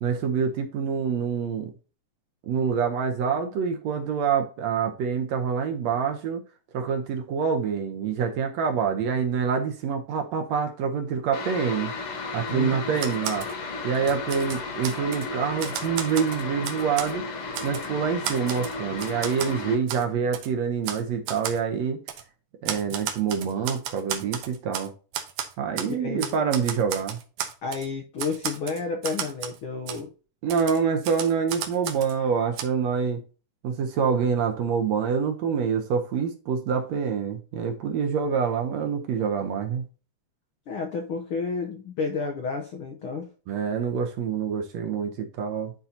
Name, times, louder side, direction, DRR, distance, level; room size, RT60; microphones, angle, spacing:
voice 1, 0.0-1.7 2.4-6.4 6.7-11.9 12.3-13.5 13.8-17.2 17.6-22.0 22.6-24.9 25.6-27.2 30.4-33.2 33.6-39.9 43.5-45.7, right 6 dB, 70° right, 1.9 m, -26 dB
sound 1, 11.3-19.8, left 3 dB, 55° left, 2.0 m, -34 dB
voice 2, 12.5-13.0 25.9-26.5 27.6-30.1 40.7-43.3, left 4 dB, 75° left, 1.2 m, -31 dB
Typewriter, 13.0-13.5 14.0-15.3 15.6-17.1 17.5-17.9 18.2-19.5 19.9-20.0 20.3-20.5 20.8-21.0 21.3-21.6 22.1-22.2 22.7-24.9 25.1-25.9 26.2-27.9 28.2-29.6 29.9-30.0 30.5-32.2 32.6-32.7, right 9 dB, 85° right, 2.5 m, -33 dB
11.5 x 3.9 x 2.8 m
omnidirectional pair, 3.7 m